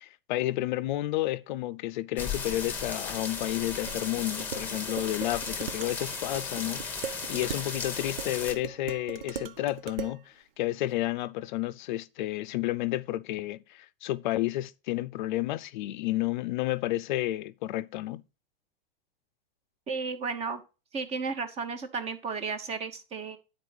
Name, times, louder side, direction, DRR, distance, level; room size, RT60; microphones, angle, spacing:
voice 1, 0.0-18.2, left 16 dB, 55° left, 0.5 m, -31 dB
sound 1, 2.2-8.5, left 5 dB, 5° left, 1.0 m, -36 dB
Dishes pots and pans, 3.9-10.2, right 7 dB, 75° right, 0.9 m, -40 dB
voice 2, 19.9-20.6 20.9-23.4, right 4 dB, 20° right, 0.9 m, -33 dB
9.5 x 4.4 x 4.9 m
hypercardioid pair, 145°, 29 cm